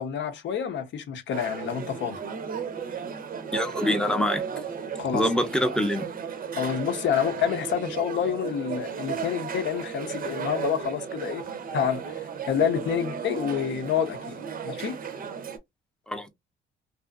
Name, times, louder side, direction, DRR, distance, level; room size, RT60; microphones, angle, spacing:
voice 1, 0.0-2.2 5.0-5.3 6.5-11.4 11.7-15.0, left 8 dB, 65° left, 0.7 m, -28 dB
sound 1, 1.3-15.6, right 7 dB, 45° right, 0.6 m, -35 dB
voice 2, 3.5-4.4 5.1-6.1 16.1-16.3, left 1 dB, 5° left, 0.5 m, -25 dB
2.6 x 2.4 x 2.3 m
cardioid pair, 90°, 20 cm